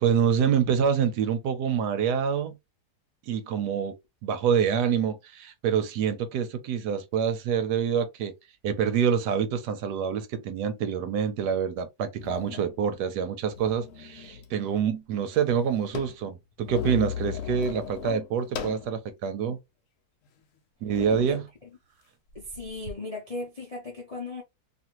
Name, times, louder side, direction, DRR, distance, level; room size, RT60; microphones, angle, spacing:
voice 1, 0.0-2.6 3.3-3.9 4.2-8.3 8.6-19.6 20.8-21.4, right 7 dB, 75° right, 1.1 m, -26 dB
sound 1, 11.5-11.6 12.2-12.8 13.4-14.5 14.8-14.9 15.1-18.9 19.4-19.5 20.2-20.4 20.8-21.4 22.3-22.9, left 7 dB, 65° left, 0.9 m, -37 dB
voice 2, 22.3-24.4, left 2 dB, 40° left, 0.5 m, -36 dB
2.8 x 2.5 x 2.9 m
omnidirectional pair, 1.8 m